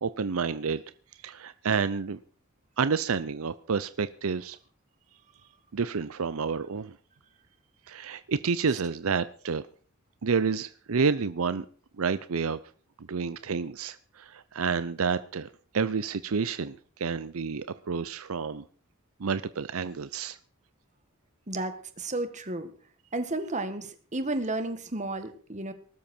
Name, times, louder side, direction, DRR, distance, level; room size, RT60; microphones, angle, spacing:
voice 1, 0.0-0.8 1.2-2.2 2.8-4.6 5.7-7.0 7.9-9.6 10.2-11.6 12.0-12.6 13.0-18.6 19.2-20.4, right 5 dB, 75° right, 14 dB, 0.6 m, -29 dB
voice 2, 21.5-22.7 23.1-25.7, right 2 dB, 35° right, 9 dB, 1.8 m, -32 dB
19.5 x 12.5 x 4.5 m, 0.42 s
head